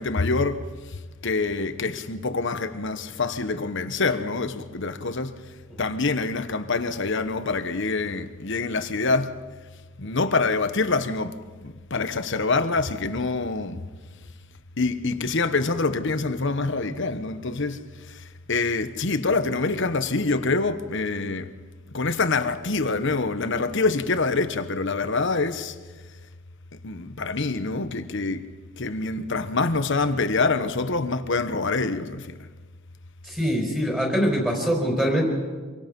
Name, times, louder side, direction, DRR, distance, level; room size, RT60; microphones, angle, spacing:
voice 1, 0.0-5.4 5.8-9.4 10.0-13.8 14.8-21.5 21.9-25.8 26.8-28.5 28.8-32.4, left 3 dB, 60° left, 1.1 m, -26 dB
voice 2, 33.2-35.2, equal, 5° right, 4.8 m, -23 dB
27.0 x 23.5 x 5.4 m
head